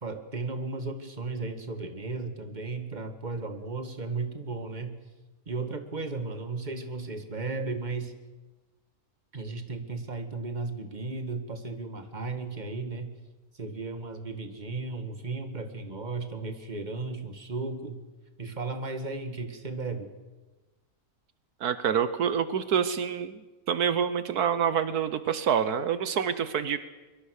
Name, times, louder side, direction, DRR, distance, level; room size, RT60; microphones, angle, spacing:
voice 1, 0.0-5.0 5.5-8.1 9.3-13.1 13.5-18.0 18.4-20.1, right 3 dB, 30° right, 7 dB, 2.1 m, -35 dB
voice 2, 21.6-23.4 23.7-26.8, right 8 dB, 80° right, 12 dB, 1.5 m, -27 dB
24.0 x 23.0 x 6.5 m, 1.2 s
omnidirectional pair, 1.6 m